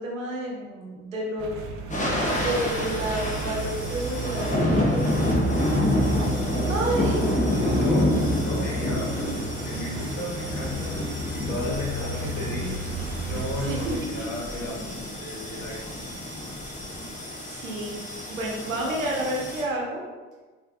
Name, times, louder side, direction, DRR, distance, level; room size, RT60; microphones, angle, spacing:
voice 1, 0.0-1.6 2.3-5.5 6.7-7.3 13.6-14.3 17.5-18.0 18.3-20.1, right 1 dB, 85° right, -2 dB, 0.7 m, -30 dB
sound 1, 1.4-14.0, right 3 dB, 40° right, 0.4 m, -33 dB
sound 2, 1.9-19.6, left 1 dB, 20° left, 0.9 m, -28 dB
voice 2, 7.5-8.2 8.4-11.0 11.3-12.7 13.3-14.9 15.2-16.0, left 1 dB, 50° left, -3 dB, 1.3 m, -34 dB
4.7 x 2.4 x 2.3 m, 1.3 s
figure-of-eight pair, 50°, 38 cm